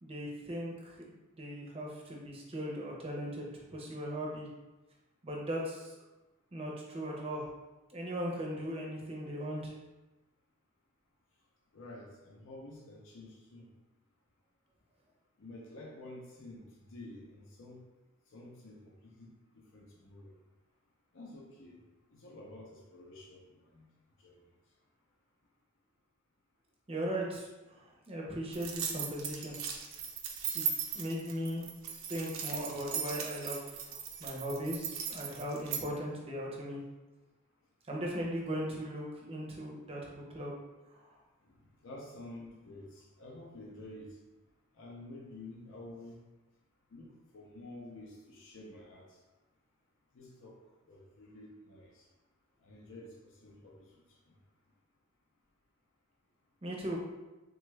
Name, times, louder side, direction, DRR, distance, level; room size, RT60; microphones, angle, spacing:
voice 1, 0.0-4.5 5.2-5.9 6.5-7.5 7.9-9.8 26.9-29.6 30.5-30.6 30.9-31.7 32.1-36.8 37.9-40.5 41.0-41.1 56.6-57.0, equal, 25° right, -2 dB, 0.6 m, -38 dB
voice 2, 11.7-13.7 15.4-17.8 18.3-20.3 21.1-21.8 22.1-23.4 23.7-23.9 24.2-24.4 41.5-44.2 44.7-46.2 46.9-49.2 50.1-50.6 50.9-52.1 52.6-53.1 53.4-53.9, left 2 dB, 60° left, -2 dB, 0.5 m, -50 dB
sound 1, 28.5-35.8, right 7 dB, 75° right, 0.5 m, -38 dB
3.4 x 2.3 x 3.1 m, 1.1 s
head